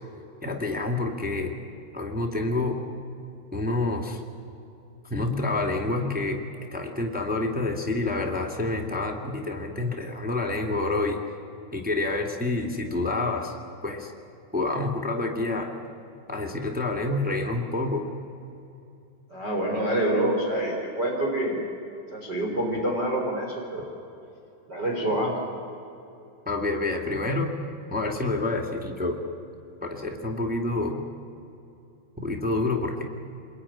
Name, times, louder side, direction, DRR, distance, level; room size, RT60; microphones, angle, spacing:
voice 1, 0.4-1.5 1.9-2.8 3.5-4.2 5.1-6.4 6.7-11.2 11.7-13.5 13.8-14.1 14.5-15.7 16.3-18.1 26.4-27.5 27.9-29.2 29.8-31.0 32.2-33.0, left 2 dB, 5° right, 1 dB, 0.7 m, -28 dB
voice 2, 19.3-21.6 22.1-23.9 24.7-25.3, right 1 dB, 25° right, 0 dB, 3.9 m, -26 dB
27.5 x 22.0 x 9.9 m, 2.8 s
omnidirectional pair, 4.7 m